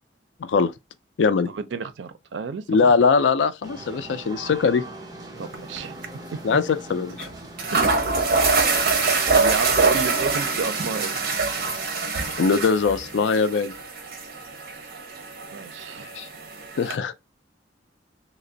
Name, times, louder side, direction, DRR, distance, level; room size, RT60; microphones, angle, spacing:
voice 1, 0.4-0.7 1.2-1.5 2.7-4.8 6.4-6.6 6.9-7.3 12.4-13.7 16.1-16.3 16.8-17.1, left 5 dB, 85° left, 0.4 m, -21 dB
voice 2, 1.4-2.9 5.4-6.0 6.3-6.4 7.7-8.2 9.3-11.1 15.5-16.1, right 5 dB, 90° right, 0.4 m, -31 dB
sound 1, 3.6-11.9, right 2 dB, 20° right, 0.7 m, -40 dB
sound 2, 5.5-5.8 6.0-6.1 7.2-7.3 7.6-17.0, right 4 dB, 55° right, 0.7 m, -24 dB
3.3 x 2.0 x 3.7 m
head